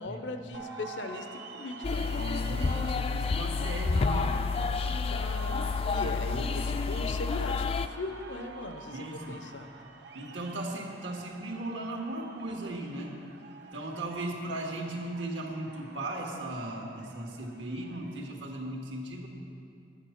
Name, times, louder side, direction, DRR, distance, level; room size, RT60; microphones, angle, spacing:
voice 1, 0.0-2.3 5.1-9.7, left 2 dB, 85° left, 7 dB, 0.8 m, -39 dB
sound 1, 0.5-18.3, right 4 dB, 70° right, 0.9 m, -47 dB
sound 2, 1.8-7.9, left 4 dB, 30° left, 0.3 m, -29 dB
voice 2, 2.1-4.3 5.9-6.5 8.9-9.4 10.1-13.2 13.7-19.3, right 1 dB, 85° right, 0 dB, 1.8 m, -37 dB
11.5 x 9.8 x 5.9 m, 2.6 s
head